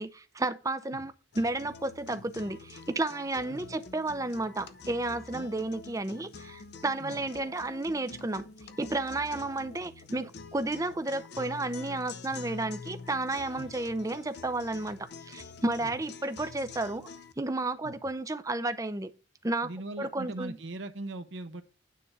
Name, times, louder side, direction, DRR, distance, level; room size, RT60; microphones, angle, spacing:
voice 1, 0.0-8.4 8.8-17.1 17.4-19.1 19.4-19.7 20.0-20.6, right 2 dB, 15° right, 0.6 m, -32 dB
sound 1, 1.3-17.3, left 4 dB, 60° left, 0.7 m, -46 dB
voice 2, 19.6-21.6, right 2 dB, 70° right, 0.8 m, -40 dB
9.4 x 3.7 x 6.6 m
head